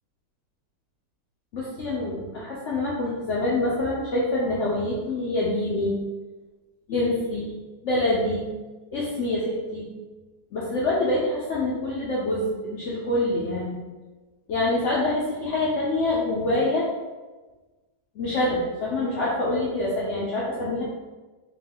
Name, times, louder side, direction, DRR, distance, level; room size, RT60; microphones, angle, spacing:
voice 1, 1.5-5.9 6.9-7.5 7.8-8.5 8.9-9.9 10.5-13.8 14.5-16.9 18.2-20.8, left 2 dB, 70° left, -6 dB, 0.7 m, -26 dB
4.6 x 2.3 x 3.8 m, 1.2 s
omnidirectional pair, 2.0 m